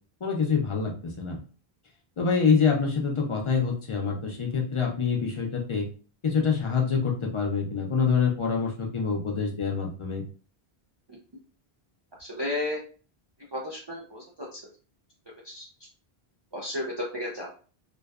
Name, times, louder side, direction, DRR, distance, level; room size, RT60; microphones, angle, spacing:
voice 1, 0.2-1.4 2.2-5.9 6.2-10.2, left 5 dB, 55° left, 0 dB, 0.3 m, -26 dB
voice 2, 12.2-12.8 13.5-14.6 15.4-15.7 16.5-17.6, left 1 dB, 40° right, -4 dB, 0.4 m, -33 dB
2.6 x 2.1 x 2.3 m, 0.39 s
omnidirectional pair, 1.1 m